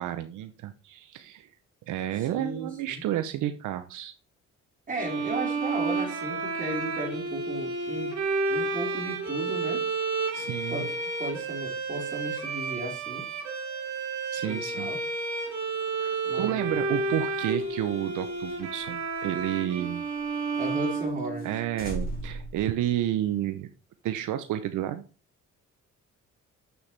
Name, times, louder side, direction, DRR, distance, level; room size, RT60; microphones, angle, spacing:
voice 1, 0.0-1.5 1.9-4.1 10.3-10.9 14.3-14.9 16.0-20.0 21.4-23.7 24.0-25.0, right 12 dB, 85° right, 10 dB, 0.7 m, -31 dB
voice 2, 2.3-3.0 4.9-8.1 8.5-9.8 10.7-10.9 11.2-13.2 14.5-15.0 16.3-16.8 20.6-21.5, right 1 dB, 25° right, -2 dB, 4.2 m, -35 dB
sound 1, 4.9-21.8, right 3 dB, 60° right, 2.9 m, -31 dB
sound 2, 17.5-20.3 20.6-20.7 21.0-21.1 21.4-21.5 21.8-23.5, right 1 dB, 30° left, 3.4 m, -40 dB
7.6 x 6.8 x 3.3 m, 0.35 s
cardioid pair, 90°, 30 cm